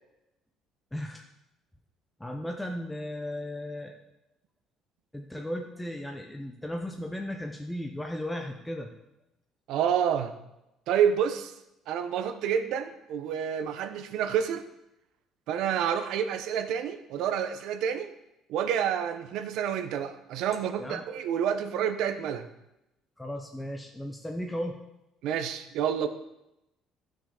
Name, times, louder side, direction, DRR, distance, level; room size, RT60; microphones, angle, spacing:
voice 1, 0.9-1.3 2.2-4.0 5.1-8.9 20.8-21.0 23.2-24.8, left 1 dB, 5° left, 2 dB, 0.8 m, -35 dB
voice 2, 9.7-10.3 10.9-11.5 11.9-14.6 15.5-18.1 18.5-22.5 25.2-26.1, right 8 dB, 70° right, 9 dB, 1.0 m, -28 dB
14.5 x 6.4 x 5.0 m, 0.89 s
cardioid pair, 160°, 0 cm